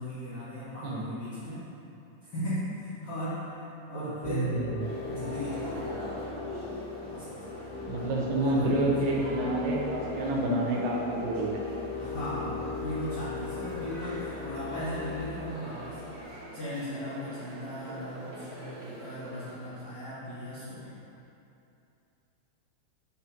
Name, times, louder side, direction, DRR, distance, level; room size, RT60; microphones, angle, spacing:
voice 1, 0.0-1.7 2.2-4.6 5.1-6.2 7.1-7.3 8.4-9.3 12.0-16.0 16.5-21.0, left 1 dB, 75° left, -12 dB, 1.3 m, -37 dB
voice 2, 3.9-4.7 7.9-11.6, right 1 dB, 85° right, -2 dB, 2.8 m, -28 dB
sound 1, 4.2-16.2, left 5 dB, 90° left, 2.9 m, -39 dB
sound 2, 4.8-19.9, right 1 dB, 50° right, 2.3 m, -43 dB
6.9 x 6.1 x 2.9 m, 2.7 s
omnidirectional pair, 4.5 m